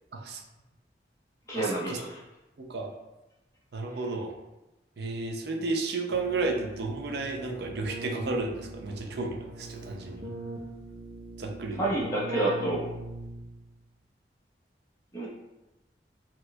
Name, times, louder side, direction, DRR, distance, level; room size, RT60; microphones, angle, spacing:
voice 1, 0.1-0.4 1.5-2.0 2.6-2.9 3.7-4.3 5.0-10.3 11.4-11.8, right 3 dB, 70° right, 2 dB, 0.5 m, -32 dB
voice 2, 1.5-2.2 11.8-12.9 15.1-15.3, right 1 dB, 15° left, -6 dB, 0.8 m, -29 dB
Keyboard (musical), 6.1-13.7, right 2 dB, 90° right, 0.8 m, -41 dB
4.3 x 2.3 x 2.2 m, 0.99 s
head